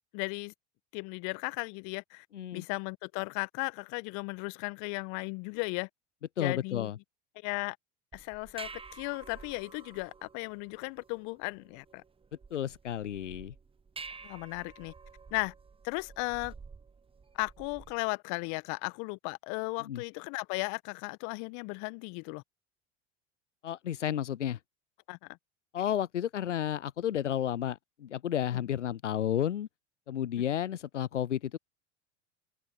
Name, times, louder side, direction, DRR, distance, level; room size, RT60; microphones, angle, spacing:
voice 1, 0.1-0.5 0.9-2.2 2.5-5.9 6.4-6.9 7.4-7.8 8.1-12.0 14.2-14.9 15.3-15.5 15.8-16.5 17.4-22.4 25.1-25.3, left 33 dB, 55° left, 1.5 m, -36 dB
voice 2, 2.3-2.6 6.4-7.0 12.5-13.5 19.9-20.0 23.6-24.6 25.7-29.7 30.1-31.6, left 10 dB, 90° left, 0.5 m, -32 dB
sound 1, 8.1-18.1, right 4 dB, 15° right, 1.3 m, -50 dB
open air
figure-of-eight pair, 75°, 35 cm